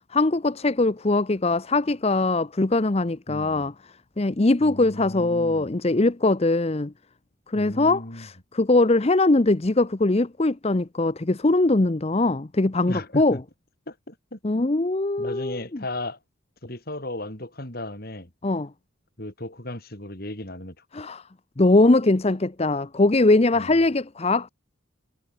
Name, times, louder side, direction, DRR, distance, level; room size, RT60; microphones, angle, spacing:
voice 1, 0.1-3.7 4.2-6.9 7.5-13.4 14.4-15.6 18.4-18.7 20.9-21.2 21.6-24.5, left 2 dB, 30° left, 0.7 m, -21 dB
voice 2, 3.3-3.7 4.6-5.7 7.5-8.3 12.9-13.4 13.9-14.4 15.2-16.2 16.6-18.3 19.2-20.8 23.6-23.8, left 1 dB, 45° left, 3.9 m, -36 dB
head